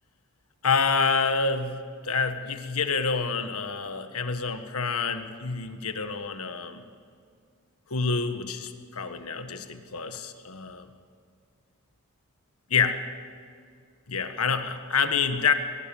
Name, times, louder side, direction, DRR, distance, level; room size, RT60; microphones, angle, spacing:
voice 1, 0.6-1.8 2.0-6.8 7.9-10.9 12.7-13.0 14.1-15.5, left 5 dB, 90° left, 8 dB, 1.6 m, -27 dB
22.5 x 20.0 x 7.1 m, 2.2 s
head